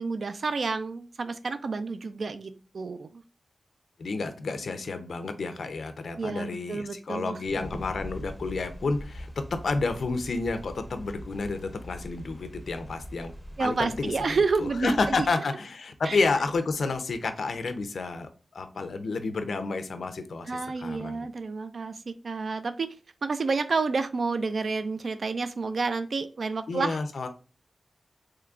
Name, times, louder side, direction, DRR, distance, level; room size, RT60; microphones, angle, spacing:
voice 1, 0.0-3.2 6.2-7.4 13.6-15.3 16.0-16.2 20.5-23.0 23.2-27.0, right 4 dB, 65° right, 10 dB, 0.3 m, -30 dB
voice 2, 4.0-9.3 9.6-13.3 13.6-14.1 14.6-21.3 26.7-27.3, left 3 dB, 80° left, 8 dB, 0.5 m, -30 dB
sound 1, 7.4-15.3, equal, ahead, 0.6 m, -42 dB
3.6 x 3.1 x 2.3 m, 0.35 s
wide cardioid pair, 125°, 0 cm